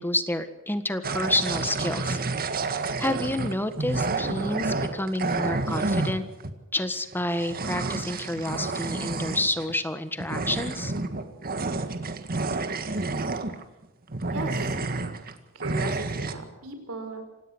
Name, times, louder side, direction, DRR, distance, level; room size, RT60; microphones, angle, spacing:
voice 1, 0.0-2.5 3.0-6.2 6.7-10.9, left 1 dB, 10° left, 10 dB, 1.6 m, -29 dB
sound 1, 1.0-6.5 7.1-9.7 10.2-13.8 14.1-15.3 15.6-16.3, right 3 dB, 45° right, 1.8 m, -29 dB
voice 2, 14.3-14.8 15.5-17.2, right 2 dB, 65° right, 7 dB, 5.0 m, -36 dB
27.0 x 17.0 x 6.3 m, 1.0 s
head